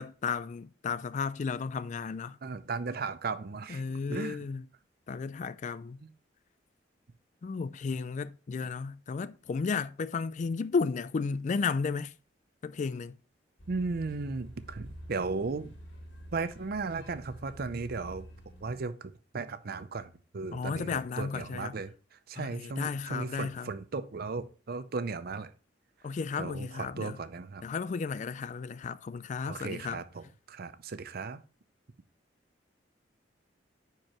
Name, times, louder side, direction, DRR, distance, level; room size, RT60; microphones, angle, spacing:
voice 1, 0.0-2.4 3.7-4.6 5.1-6.0 7.4-12.1 12.6-13.2 20.5-21.7 22.4-23.7 26.0-27.2 27.6-30.0, left 5 dB, 40° left, 0.3 m, -33 dB
voice 2, 2.4-3.8 4.1-4.4 8.6-8.7 13.7-15.7 16.3-18.3 18.6-25.5 26.4-27.6 29.5-31.4, right 4 dB, 55° right, 0.6 m, -36 dB
sound 1, 13.6-18.8, equal, 70° left, 2.4 m, -48 dB
9.6 x 4.6 x 3.0 m
head